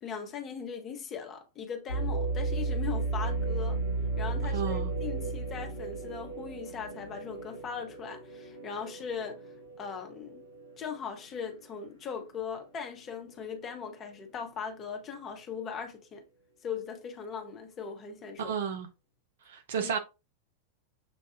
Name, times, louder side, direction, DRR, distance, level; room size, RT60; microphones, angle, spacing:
voice 1, 0.0-3.8 4.2-9.4 9.8-10.5 10.8-16.2 16.6-18.6 19.8-19.9, left 6 dB, 30° left, 1.0 m, -39 dB
sound 1, 1.9-11.8 12.3-12.4 13.1-13.4, right 3 dB, 85° right, 2.5 m, -34 dB
voice 2, 4.5-4.9 18.4-18.9 19.5-20.0, right 7 dB, 60° right, 0.7 m, -32 dB
6.8 x 2.6 x 2.4 m
figure-of-eight pair, 90°, 0 cm